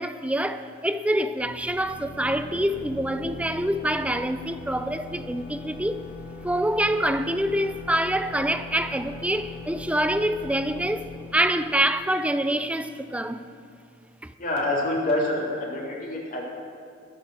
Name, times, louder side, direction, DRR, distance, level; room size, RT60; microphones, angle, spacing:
voice 1, 0.0-6.1 6.4-13.5 14.2-14.3, right 1 dB, 5° right, 0.5 m, -26 dB
sound 1, 1.4-12.9, left 3 dB, 25° left, 4.0 m, -41 dB
voice 2, 14.4-16.4, left 1 dB, 45° left, 3.3 m, -26 dB
20.5 x 7.2 x 6.5 m
head